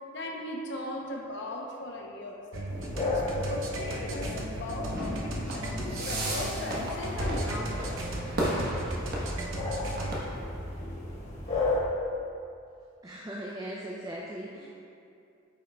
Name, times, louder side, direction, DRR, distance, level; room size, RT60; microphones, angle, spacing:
voice 1, 0.1-8.0, left 1 dB, 55° left, 0 dB, 0.8 m, -38 dB
sound 1, 2.5-10.2, right 1 dB, 70° right, 0.7 m, -37 dB
sound 2, 2.7-11.8, left 2 dB, 35° left, 1.2 m, -35 dB
sound 3, 4.9-10.1, right 1 dB, 50° right, 1.1 m, -35 dB
voice 2, 13.0-14.7, right 1 dB, 15° right, -3 dB, 0.4 m, -39 dB
8.6 x 5.7 x 2.3 m, 2.5 s
head